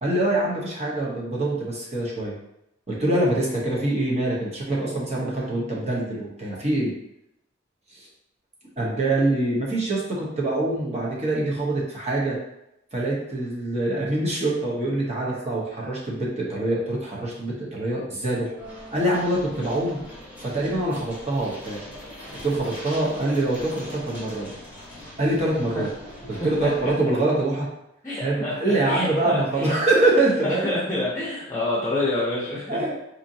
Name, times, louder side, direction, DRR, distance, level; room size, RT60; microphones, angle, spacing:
voice 1, 0.0-2.3 2.9-6.9 8.8-12.4 12.9-18.5 18.9-20.0 20.4-21.8 22.4-24.5 25.2-25.9 26.3-27.7 28.2-30.7 32.7-32.9, right 2 dB, 35° right, -4 dB, 1.0 m, -24 dB
sound 1, 18.6-27.0, left 1 dB, 10° right, 1.0 m, -41 dB
voice 2, 26.3-26.9 28.0-29.8 30.4-33.0, left 2 dB, 15° left, -7 dB, 0.7 m, -28 dB
4.3 x 2.6 x 2.7 m, 0.83 s
head